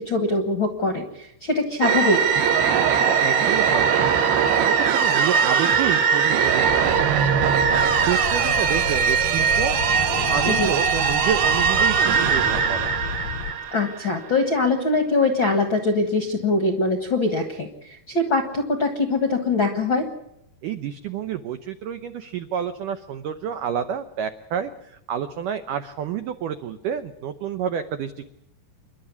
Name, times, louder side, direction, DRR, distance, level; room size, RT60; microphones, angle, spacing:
voice 1, 0.0-2.2 10.5-10.7 13.7-20.0, left 3 dB, 60° left, 6 dB, 1.2 m, -23 dB
sound 1, 1.8-14.3, right 6 dB, 65° right, 3.1 m, -20 dB
voice 2, 3.1-4.1 4.5-7.5 8.0-12.9 20.6-28.3, right 8 dB, 90° right, 10 dB, 1.8 m, -29 dB
sound 2, 6.7-13.5, left 7 dB, 85° left, 1.5 m, -32 dB
28.5 x 12.0 x 9.7 m, 0.80 s
omnidirectional pair, 5.1 m